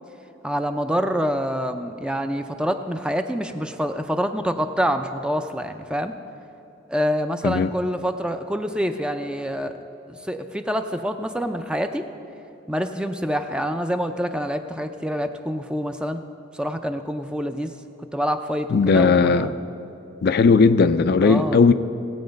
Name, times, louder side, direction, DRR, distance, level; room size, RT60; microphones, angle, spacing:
voice 1, 0.4-6.1 6.9-9.8 10.1-12.1 12.7-16.2 16.5-17.7 18.1-19.5 21.2-21.6, equal, 5° right, 7 dB, 0.4 m, -26 dB
voice 2, 18.7-19.5 20.2-21.7, left 4 dB, 55° left, 11 dB, 0.4 m, -17 dB
17.5 x 8.6 x 5.2 m, 2.9 s
head